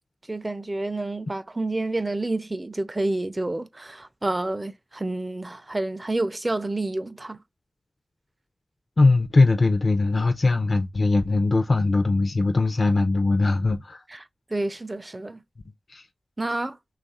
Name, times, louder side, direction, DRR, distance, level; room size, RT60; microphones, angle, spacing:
voice 1, 0.3-7.4 14.1-15.4 16.4-16.8, right 2 dB, 30° right, 0.4 m, -29 dB
voice 2, 9.0-14.0 15.9-16.0, left 3 dB, 55° left, 0.4 m, -21 dB
3.1 x 2.4 x 4.1 m
cardioid pair, 45°, 0 cm